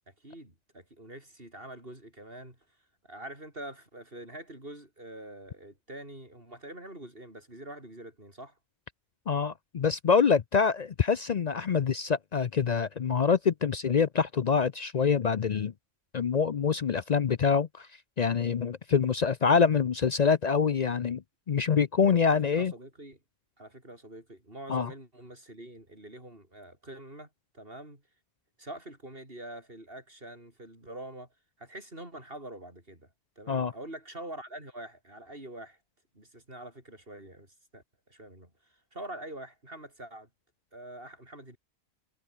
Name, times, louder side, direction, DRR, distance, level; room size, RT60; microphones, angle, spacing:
voice 1, 0.1-2.8 3.0-8.6 22.2-23.2 23.6-28.0 28.6-31.3 31.6-33.1 33.4-35.8 36.1-40.3 40.7-41.6, right 1 dB, 45° right, 7.6 m, -45 dB
voice 2, 9.3-15.7 16.1-17.9 18.2-22.7 24.7-24.9 33.5-33.7, left 6 dB, 50° left, 0.5 m, -25 dB
omnidirectional pair, 1.3 m